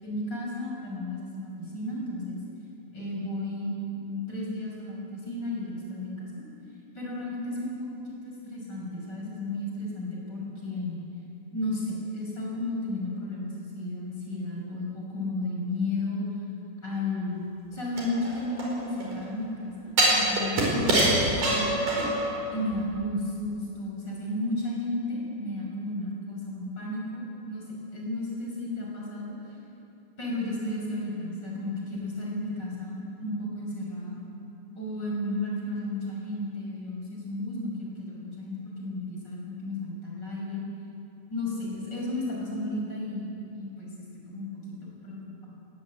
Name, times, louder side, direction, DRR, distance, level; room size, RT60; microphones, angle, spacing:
voice 1, 0.0-2.4 2.9-6.4 7.0-11.0 11.5-16.2 16.8-17.5 17.7-21.8 22.5-29.3 30.2-34.2 34.8-40.6 41.3-45.5, left 1 dB, 30° left, -3 dB, 6.9 m, -33 dB
sound 1, 18.0-19.1 20.0-22.3 22.7-22.8, right 2 dB, 80° right, 6.5 m, -24 dB
20.5 x 19.5 x 9.0 m, 2.8 s
omnidirectional pair, 3.8 m